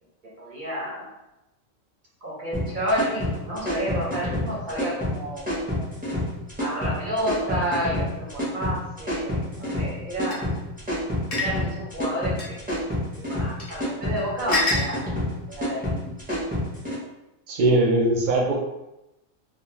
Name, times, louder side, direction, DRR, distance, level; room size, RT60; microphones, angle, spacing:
voice 1, 0.4-1.1 2.2-5.8 6.6-10.4 11.3-12.4 12.7-12.8 13.3-15.0 15.5-16.1, equal, 45° right, -5 dB, 0.8 m, -30 dB
sound 1, 2.5-17.0, left 1 dB, 10° right, 0.6 m, -28 dB
sound 2, 10.3-10.4 11.3-11.5 12.4-12.5 13.6-13.7 14.5-14.9, left 2 dB, 45° left, 0.5 m, -25 dB
voice 2, 17.5-18.6, right 2 dB, 85° right, -1 dB, 0.4 m, -20 dB
2.3 x 2.2 x 3.0 m, 0.93 s
omnidirectional pair, 1.4 m